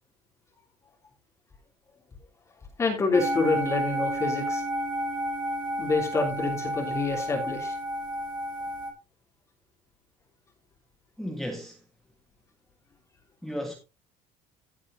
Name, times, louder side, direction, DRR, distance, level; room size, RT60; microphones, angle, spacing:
voice 1, 2.8-4.6 5.8-7.7, left 3 dB, 20° left, 3.2 m, -27 dB
sound 1, 3.1-8.9, equal, 35° right, 4.5 m, -31 dB
voice 2, 11.2-11.8 13.4-13.7, equal, ahead, 1.6 m, -34 dB
15.5 x 8.4 x 2.8 m
cardioid pair, 165°, 14 cm